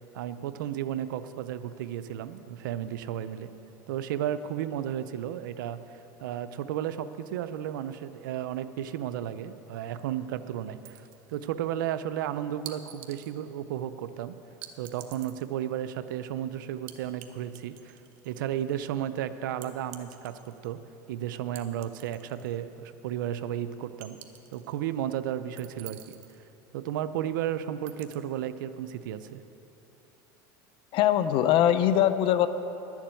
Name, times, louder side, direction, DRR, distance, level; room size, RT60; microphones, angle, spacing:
voice 1, 0.1-3.5 3.9-14.4 14.8-18.0 18.2-20.8 21.1-24.2 24.5-26.0 26.7-29.4, right 10 dB, 85° right, 12 dB, 0.5 m, -33 dB
sound 1, 10.8-11.4 12.7-13.3 14.6-15.5 16.9-17.3 17.5-18.4 19.6-20.7 21.6-22.6 22.9-23.0 24.0-24.7 25.6-26.4 27.9-28.2, right 12 dB, 65° right, 1.0 m, -47 dB
voice 2, 30.9-32.5, left 11 dB, 55° left, 12 dB, 0.7 m, -22 dB
11.5 x 7.3 x 9.0 m, 3.0 s
supercardioid pair, 110°, 10 cm